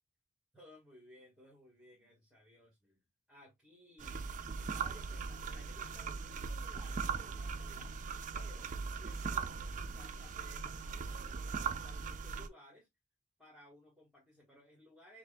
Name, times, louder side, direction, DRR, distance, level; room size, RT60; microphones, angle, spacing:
voice 1, 0.5-4.2 4.7-7.9 8.3-12.9 13.4-15.2, equal, 5° right, 1.4 m, -60 dB
sound 1, 4.0-12.5, right 5 dB, 35° right, 0.4 m, -40 dB
5.8 x 2.5 x 2.2 m
head